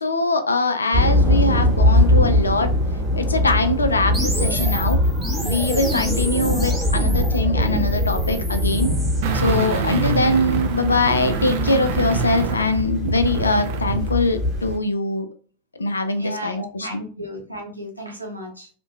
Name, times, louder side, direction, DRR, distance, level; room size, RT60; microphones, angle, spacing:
voice 1, 0.0-2.8 3.2-5.0 5.4-8.9 9.3-15.3 15.7-17.0, left 2 dB, 75° left, 8 dB, 0.3 m, -22 dB
sound 1, 0.9-14.8, left 1 dB, 25° right, 1.1 m, -22 dB
sound 2, 4.1-9.2, equal, 5° right, 0.6 m, -30 dB
sound 3, 9.2-14.1 14.4-14.5, right 6 dB, 50° right, 0.4 m, -26 dB
voice 2, 16.2-18.7, equal, 85° right, 0 dB, 0.6 m, -34 dB
2.6 x 2.1 x 2.3 m, 0.42 s
figure-of-eight pair, 90°, 0 cm